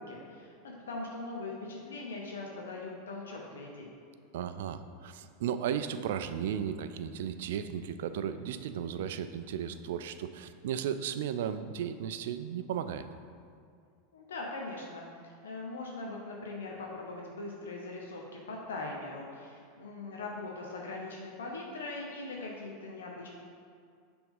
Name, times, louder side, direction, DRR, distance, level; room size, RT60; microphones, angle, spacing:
voice 1, 0.0-3.9 14.1-23.3, left 2 dB, 90° left, -1 dB, 0.7 m, -41 dB
voice 2, 4.3-13.1, right 9 dB, 75° right, 11 dB, 0.3 m, -35 dB
5.9 x 3.5 x 5.3 m, 2.2 s
hypercardioid pair, 110°, 0 cm